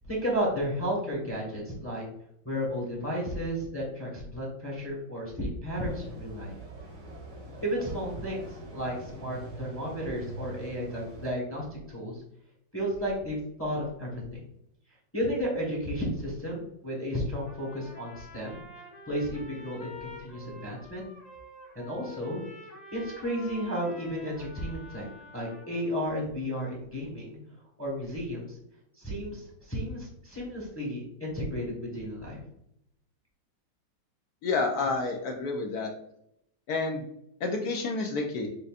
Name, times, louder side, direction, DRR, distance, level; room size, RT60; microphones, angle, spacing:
voice 1, 0.0-2.0 2.4-6.5 7.6-12.2 12.7-14.2 15.1-18.6 19.1-21.0 21.7-22.4 22.9-25.0 25.3-27.4 27.8-28.6 29.0-32.4, equal, 10° left, -3 dB, 0.9 m, -33 dB
sound 1, 5.7-11.3, right 1 dB, 85° right, 2.4 m, -44 dB
Trumpet, 17.4-25.9, left 2 dB, 45° left, 0.5 m, -48 dB
voice 2, 34.4-35.9 36.7-37.1 37.4-38.5, left 3 dB, 70° left, 1 dB, 1.0 m, -29 dB
6.5 x 2.6 x 2.4 m, 0.76 s
omnidirectional pair, 2.0 m